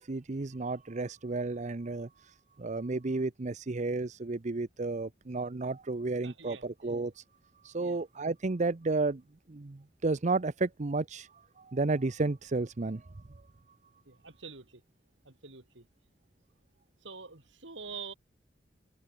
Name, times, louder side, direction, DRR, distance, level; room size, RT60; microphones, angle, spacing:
voice 1, 0.0-7.2 7.6-9.2 9.5-13.1, right 3 dB, 40° right, 0.7 m, -32 dB
voice 2, 6.2-6.6 7.8-8.0 14.1-14.8 15.2-15.8 17.0-18.1, right 5 dB, 85° right, 4.0 m, -46 dB
head